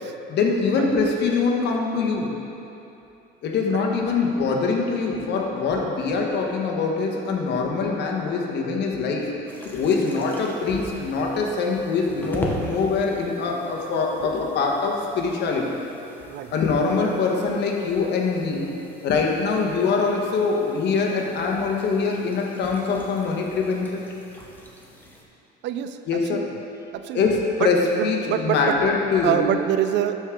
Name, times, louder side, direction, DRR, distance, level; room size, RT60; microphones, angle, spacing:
voice 1, 0.3-2.3 3.4-9.3 9.6-15.8 16.5-18.7 19.0-24.0 26.1-26.5 27.1-29.6, left 4 dB, 55° left, 0 dB, 1.2 m, -23 dB
sound 1, 9.5-25.2, left 1 dB, 10° left, 1.0 m, -41 dB
voice 2, 25.6-26.5 26.9-27.3 27.6-28.8 29.2-30.1, right 11 dB, 60° right, 10 dB, 0.4 m, -26 dB
12.0 x 4.8 x 3.7 m, 2.8 s
cardioid pair, 105°, 21 cm